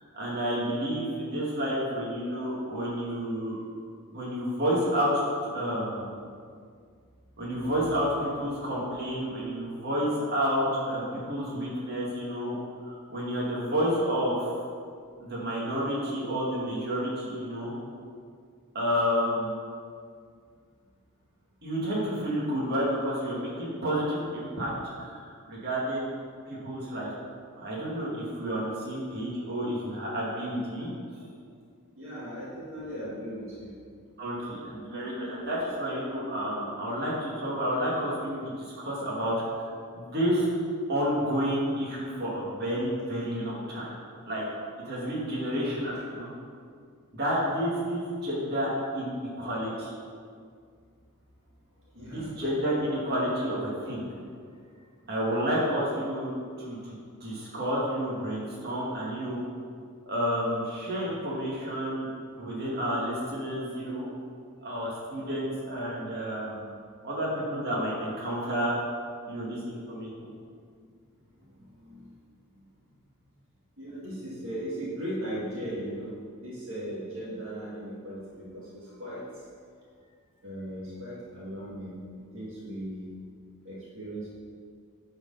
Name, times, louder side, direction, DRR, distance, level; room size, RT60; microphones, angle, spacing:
voice 1, 0.1-3.6 4.1-5.2 5.5-6.1 7.4-12.6 12.8-14.5 15.2-17.8 18.7-19.6 21.6-24.7 25.0-26.1 26.5-27.1 27.6-30.9 34.2-39.4 39.9-40.5 40.9-43.9 44.3-44.5 44.8-46.3 47.1-49.9 52.0-54.1 55.1-59.4 60.1-62.1 62.4-64.1 64.6-66.7 67.0-68.8 69.3-70.1, equal, 50° right, -6 dB, 2.2 m, -30 dB
voice 2, 32.0-33.7 51.9-52.4 54.6-55.1 71.8-72.1 73.8-79.2 80.4-83.1 83.6-84.3, right 1 dB, 65° right, -7 dB, 2.0 m, -38 dB
9.7 x 4.6 x 5.6 m, 2.1 s
head